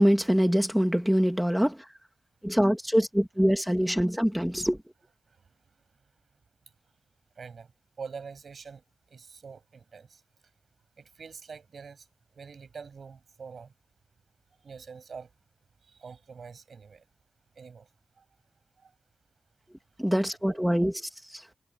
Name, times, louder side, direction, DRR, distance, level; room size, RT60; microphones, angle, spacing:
voice 1, 0.0-1.9 2.4-4.8 20.0-21.5, equal, 5° right, 2.2 m, -24 dB
voice 2, 7.4-7.7 8.0-10.2 11.0-12.1 12.3-13.7 14.6-15.3 15.8-17.1 17.6-17.9 18.2-18.3 18.8-18.9 20.5-20.6, right 5 dB, 80° right, 7.8 m, -45 dB
wide cardioid pair, 80°, 0 cm